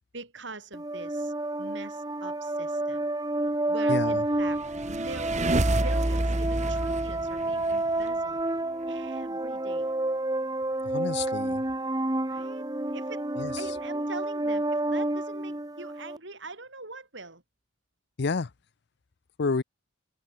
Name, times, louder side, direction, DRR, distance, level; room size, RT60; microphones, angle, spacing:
voice 1, 0.1-3.1 3.7-4.6 4.8-8.4 8.9-9.9 12.3-12.6 12.9-13.2 13.6-17.4, right 3 dB, 60° right, 6.5 m, -43 dB
sound 1, 0.7-16.2, right 2 dB, 20° right, 1.5 m, -29 dB
voice 2, 3.9-4.2 10.8-11.6 13.4-13.6 18.2-18.5 19.4-19.6, left 4 dB, 55° left, 0.6 m, -29 dB
sound 2, 4.5-8.1, right 1 dB, 35° right, 1.5 m, -28 dB
head